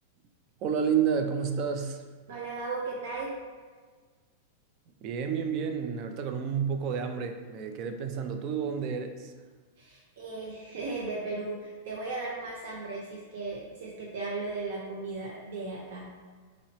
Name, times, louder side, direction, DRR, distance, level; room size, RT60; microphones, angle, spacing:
voice 1, 0.6-2.0 5.0-9.3, right 7 dB, 40° right, 6 dB, 0.3 m, -30 dB
voice 2, 2.3-3.3 9.8-16.1, right 3 dB, 75° right, -3 dB, 0.6 m, -36 dB
3.9 x 2.8 x 3.0 m, 1.5 s
supercardioid pair, 145°, 0 cm